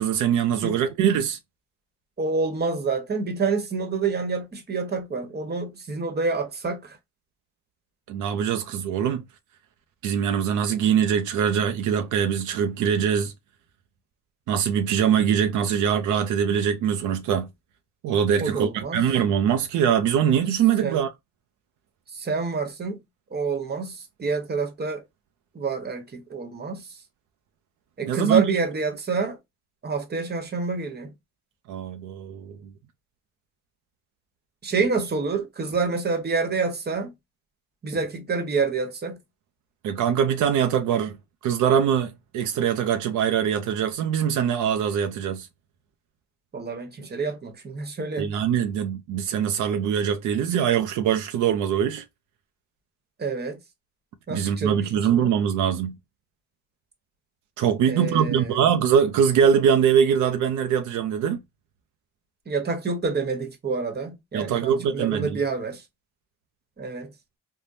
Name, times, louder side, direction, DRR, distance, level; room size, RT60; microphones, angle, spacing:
voice 1, 0.0-1.4 8.1-9.2 10.0-13.3 14.5-17.5 18.0-21.1 28.0-28.4 31.7-32.6 39.8-41.2 41.4-45.5 48.2-52.0 54.3-56.0 57.6-61.4 64.3-65.4, right 8 dB, 85° right, 0.6 m, -23 dB
voice 2, 2.2-7.0 18.4-19.1 20.8-21.0 22.1-23.0 23.3-25.0 25.5-27.0 28.0-29.4 29.8-31.1 34.6-37.1 37.8-39.2 46.5-48.3 53.2-53.6 54.3-55.4 57.8-58.6 62.5-65.8 66.8-67.1, right 4 dB, 35° right, 1.1 m, -28 dB
3.4 x 2.2 x 2.6 m
cardioid pair, 90°, 30 cm